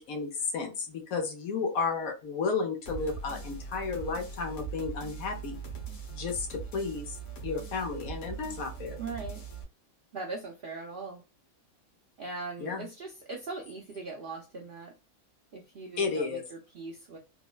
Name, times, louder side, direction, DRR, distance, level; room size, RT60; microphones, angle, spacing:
voice 1, 0.0-5.6 6.1-7.2 7.4-9.0 12.6-12.8 16.0-16.4, left 4 dB, 90° left, 3 dB, 1.2 m, -33 dB
sound 1, 2.8-9.6, right 5 dB, 60° left, 1.2 m, -41 dB
voice 2, 9.0-9.4 10.1-11.2 12.2-14.9 15.5-17.2, right 3 dB, 55° right, -1 dB, 0.6 m, -40 dB
3.5 x 2.0 x 2.2 m, 0.29 s
omnidirectional pair, 1.4 m